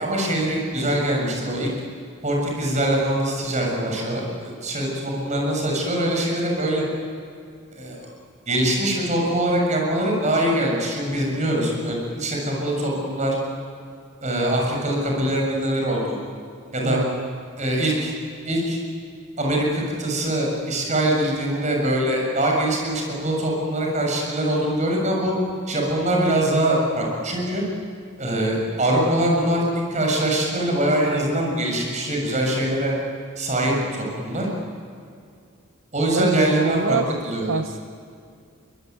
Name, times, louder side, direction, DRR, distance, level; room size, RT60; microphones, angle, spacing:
voice 1, 0.0-1.7 2.2-6.8 7.7-8.1 8.5-13.4 14.2-16.2 16.7-17.0 17.6-18.1 18.4-18.8 19.4-25.3 25.7-27.6 28.2-29.6 29.9-32.9 33.4-34.5 35.9-37.0 37.2-37.6, right 1 dB, 35° right, -1 dB, 6.9 m, -23 dB
voice 2, 16.8-17.4 36.1-37.1 37.5-37.8, right 4 dB, 60° right, 8 dB, 0.8 m, -25 dB
24.0 x 21.0 x 9.4 m, 2.3 s
head